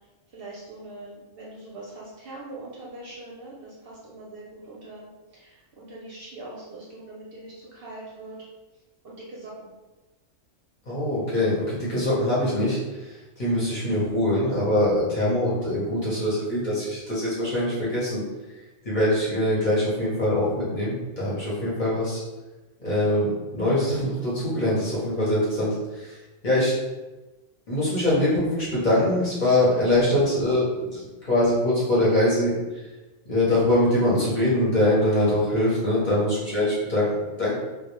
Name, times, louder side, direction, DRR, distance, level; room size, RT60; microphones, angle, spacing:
voice 1, 0.3-8.4 9.0-9.5 26.1-26.3, right 2 dB, 60° right, -5 dB, 0.6 m, -42 dB
voice 2, 10.9-18.2 18.8-22.2 22.8-26.2 26.4-26.7 27.7-32.8 33.3-37.5, left 1 dB, 45° left, -8 dB, 0.7 m, -23 dB
2.2 x 2.0 x 2.9 m, 1.1 s
omnidirectional pair, 1.3 m